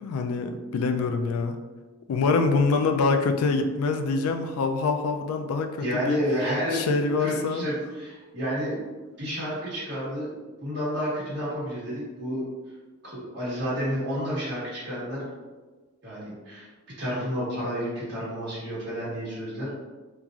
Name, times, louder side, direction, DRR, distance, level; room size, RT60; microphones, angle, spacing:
voice 1, 0.0-1.6 2.1-6.2 6.7-7.7, left 4 dB, 90° left, 7 dB, 0.3 m, -25 dB
voice 2, 5.8-6.9 7.2-8.8 9.2-10.3 10.6-12.4 13.1-15.2 16.0-16.7 17.0-19.7, equal, 50° right, -9 dB, 1.4 m, -30 dB
3.0 x 2.4 x 2.4 m, 1.3 s
head